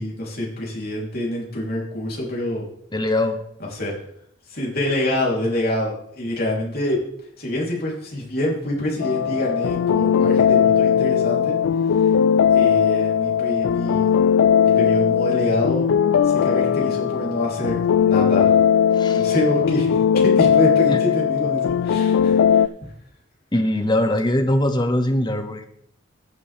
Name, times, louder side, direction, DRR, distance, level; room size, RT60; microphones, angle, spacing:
voice 1, 0.0-2.6 3.7-4.0 4.5-7.0 7.4-11.5 12.0-12.1 12.5-14.1 14.6-15.9 16.2-18.6 19.1-22.6, left 1 dB, 50° left, -3 dB, 3.5 m, -26 dB
voice 2, 2.9-3.4 18.9-19.2 20.9-21.0 23.5-25.6, left 1 dB, 20° left, 6 dB, 1.0 m, -21 dB
sound 1, 9.0-22.7, left 8 dB, 75° left, 0.3 m, -18 dB
14.5 x 7.5 x 3.5 m, 0.70 s
head